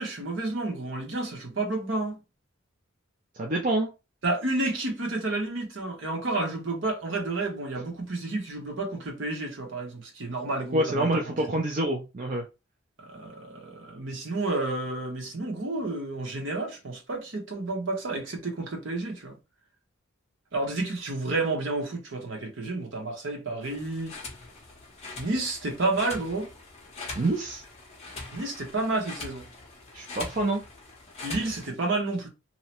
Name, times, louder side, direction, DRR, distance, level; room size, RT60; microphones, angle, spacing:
voice 1, 0.0-2.2 4.2-11.6 13.0-19.4 20.5-24.2 25.2-26.5 28.3-29.5 31.2-32.3, right 2 dB, 65° right, 0.9 m, -30 dB
voice 2, 3.4-3.9 10.7-12.4 27.2-27.6 29.9-30.6, right 1 dB, 40° right, 0.5 m, -27 dB
sound 1, 23.6-31.7, left 3 dB, 30° left, 0.7 m, -42 dB
2.8 x 2.1 x 2.8 m
head